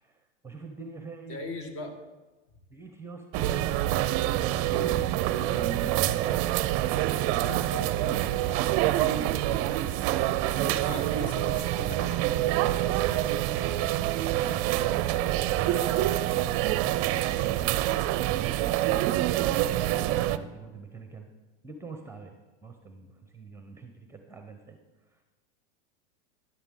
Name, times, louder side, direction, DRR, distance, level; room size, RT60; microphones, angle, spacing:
voice 1, 0.0-1.4 2.7-4.2 4.5-5.0 5.4-6.6 10.4-11.0 12.7-13.1 19.8-21.3 21.6-22.4 22.6-24.8 25.1-25.2, right 3 dB, 5° right, 5 dB, 0.8 m, -44 dB
voice 2, 1.3-2.0 7.4-9.5 10.5-12.3, left 2 dB, 40° left, 5 dB, 1.9 m, -40 dB
sound 1, 3.3-20.4, right 14 dB, 40° right, 0.5 m, -26 dB
11.0 x 10.5 x 3.8 m, 1.2 s
hypercardioid pair, 115°, 35 cm